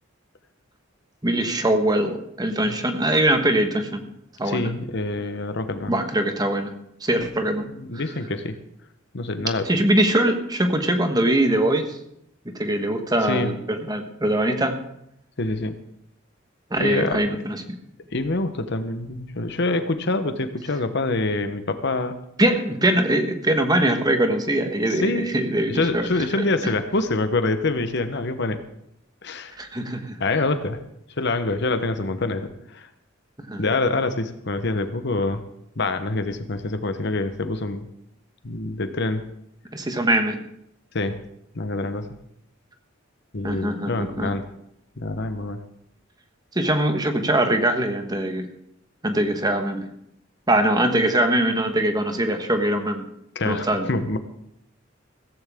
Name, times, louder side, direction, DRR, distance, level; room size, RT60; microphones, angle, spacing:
voice 1, 1.2-4.1 4.4-4.7 5.9-6.7 7.0-7.7 9.6-12.0 12.5-14.8 16.7-17.8 22.4-26.1 29.6-30.1 33.5-33.6 39.7-40.4 43.4-44.3 46.5-48.5 49.0-49.9 50.5-53.1 53.4-53.9, right 1 dB, 20° right, 6 dB, 1.3 m, -22 dB
voice 2, 4.4-5.9 7.7-8.6 9.1-9.7 13.2-13.5 15.4-15.8 16.8-17.2 18.1-22.2 24.9-25.4 25.7-28.6 29.2-29.6 30.2-30.8 31.2-32.9 33.5-35.4 35.8-37.9 38.4-39.2 40.9-41.2 41.5-42.1 43.3-44.5 45.0-45.6 53.3-54.2, left 2 dB, 60° left, 9 dB, 1.1 m, -26 dB
16.0 x 14.5 x 3.7 m, 0.76 s
head